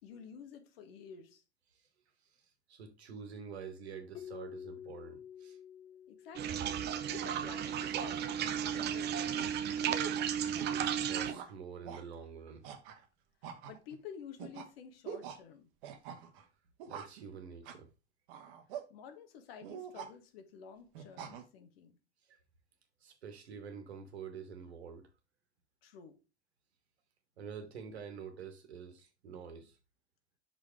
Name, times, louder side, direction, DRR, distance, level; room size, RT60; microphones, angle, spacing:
voice 1, 0.0-1.4 6.1-6.7 7.0-9.8 13.4-15.7 18.7-22.0 25.8-26.2, left 7 dB, 60° left, 1.5 m, -51 dB
voice 2, 2.7-5.6 10.7-12.6 16.9-17.9 22.3-22.4 23.0-25.1 27.4-29.8, right 6 dB, 70° right, 1.6 m, -47 dB
Keyboard (musical), 4.1-7.0, left 9 dB, 15° left, 0.4 m, -49 dB
sound 1, 6.3-11.3, right 9 dB, 30° right, 0.7 m, -34 dB
sound 2, 7.1-7.4 7.9-8.2 8.7-9.0 9.4-9.5 9.9-10.8 11.3-11.5 11.9-12.0 12.6-13.1 13.4-14.0 14.4-14.7 15.1-15.4 15.8-16.4 16.8-17.2 17.7-17.9 18.3-18.9 19.6-20.1 20.9-21.4, right 8 dB, 50° right, 1.2 m, -45 dB
6.0 x 5.1 x 4.6 m
figure-of-eight pair, 75°, 34 cm